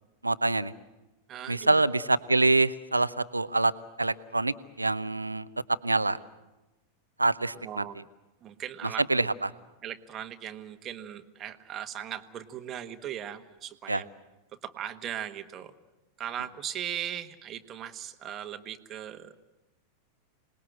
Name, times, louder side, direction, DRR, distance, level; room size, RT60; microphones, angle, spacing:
voice 1, 0.2-0.7 1.5-3.7 4.0-5.5 5.8-6.2 7.2-7.8 9.1-9.3 13.9-14.0, right 2 dB, 85° right, 16 dB, 0.8 m, -25 dB
voice 2, 1.3-1.8 7.6-8.1 8.4-9.3 9.8-14.1 14.6-15.7 16.2-19.3, right 10 dB, 30° right, 9 dB, 1.4 m, -38 dB
27.0 x 20.0 x 7.8 m, 1.0 s
figure-of-eight pair, 90°, 0 cm